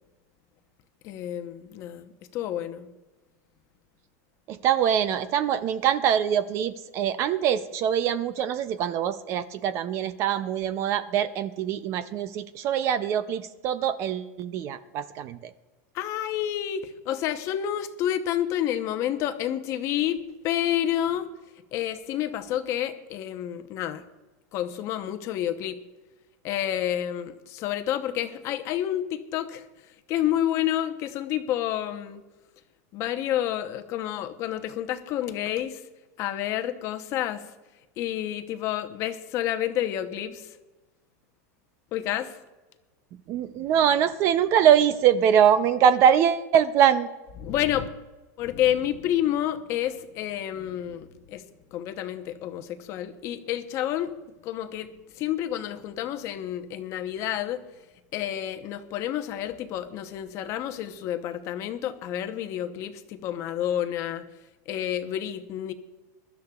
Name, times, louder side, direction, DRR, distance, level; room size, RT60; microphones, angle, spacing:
voice 1, 1.0-2.9 15.9-21.3 21.7-24.0 24.5-25.8 26.4-29.7 30.1-32.2 32.9-35.8 36.2-37.4 38.0-40.5 41.9-42.3 47.4-47.9 48.4-51.4 51.7-54.1 54.4-57.6 58.1-64.2 64.7-65.7, left 11 dB, 30° left, 9 dB, 0.8 m, -29 dB
voice 2, 4.5-15.5 43.3-47.1, right 9 dB, 30° right, 13 dB, 0.4 m, -23 dB
22.5 x 12.5 x 2.4 m, 1.1 s
supercardioid pair, 165°, 9 cm